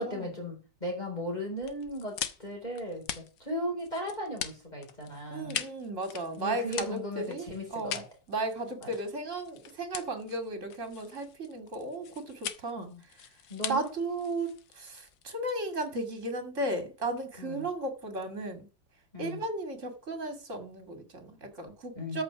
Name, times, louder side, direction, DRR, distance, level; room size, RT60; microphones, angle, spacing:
voice 1, 0.0-5.6 6.4-8.0 8.8-8.9 12.8-13.0 13.5-13.9 17.4-17.7 19.1-19.4 22.0-22.2, equal, 20° left, 4.5 m, -36 dB
sound 1, 1.6-16.3, left 9 dB, 70° left, 1.6 m, -42 dB
voice 2, 5.3-8.0 8.3-12.9 13.7-18.7 19.2-22.2, right 2 dB, 40° right, 2.7 m, -35 dB
13.5 x 5.5 x 6.1 m
omnidirectional pair, 2.1 m